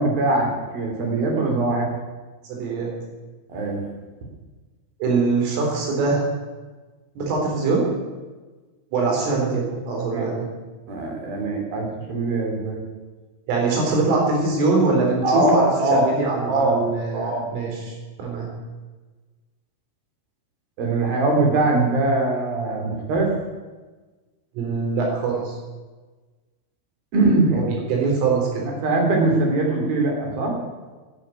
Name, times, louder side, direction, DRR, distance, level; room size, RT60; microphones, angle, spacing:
voice 1, 0.0-1.9 3.5-3.9 10.1-10.3 10.9-12.8 15.2-16.1 16.4-16.8 17.1-17.5 20.8-23.3 27.1-27.7 28.8-30.6, right 2 dB, 50° right, 1 dB, 4.4 m, -21 dB
voice 2, 2.5-2.9 5.0-6.2 7.2-7.9 8.9-10.5 13.5-18.5 24.6-25.6 27.5-28.6, right 3 dB, 70° right, 0 dB, 6.5 m, -23 dB
12.5 x 11.0 x 9.4 m, 1.3 s
omnidirectional pair, 6.0 m